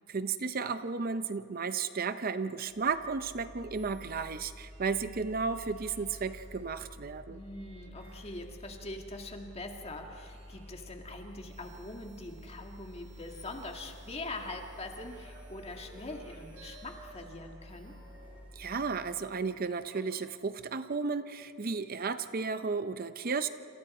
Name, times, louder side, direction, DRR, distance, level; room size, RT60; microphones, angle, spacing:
voice 1, 0.1-7.4 18.6-23.5, right 5 dB, 45° right, 11 dB, 0.6 m, -33 dB
Mechanical fan, 2.6-19.5, equal, 15° left, 3.0 m, -51 dB
sound 1, 3.7-6.7 7.4-9.6 9.9-18.4, right 4 dB, 70° right, 7.1 m, -61 dB
voice 2, 7.3-18.0, left 2 dB, 30° left, 3 dB, 1.9 m, -43 dB
sound 2, 14.9-20.3, right 1 dB, 10° right, 4.0 m, -57 dB
27.5 x 27.0 x 4.3 m, 2.8 s
head